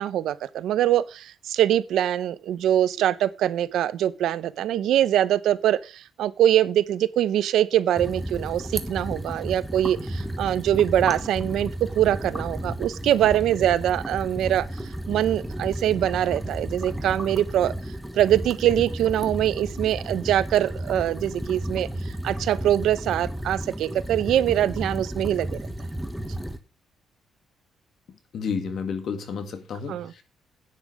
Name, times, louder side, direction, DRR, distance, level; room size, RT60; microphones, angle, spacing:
voice 1, 0.0-14.6 15.1-17.7 18.1-25.6 29.9-30.1, right 11 dB, 80° right, 0.7 m, -23 dB
sound 1, 8.0-26.6, right 1 dB, 5° right, 1.3 m, -33 dB
voice 2, 28.1-30.2, left 5 dB, 55° left, 2.1 m, -31 dB
10.0 x 9.3 x 4.9 m
cardioid pair, 140°, 0 cm